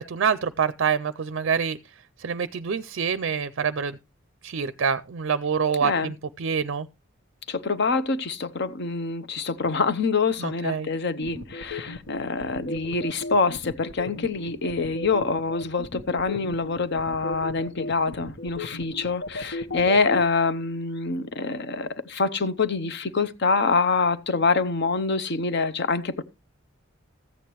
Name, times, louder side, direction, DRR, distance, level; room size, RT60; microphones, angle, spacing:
voice 1, 0.0-1.8 2.2-4.0 4.4-6.9 10.4-10.9, right 6 dB, 60° right, 0.4 m, -26 dB
voice 2, 5.8-6.1 7.5-26.2, left 4 dB, 55° left, 0.8 m, -25 dB
sound 1, 11.2-20.2, left 2 dB, 80° left, 1.3 m, -34 dB
14.0 x 8.5 x 3.0 m
head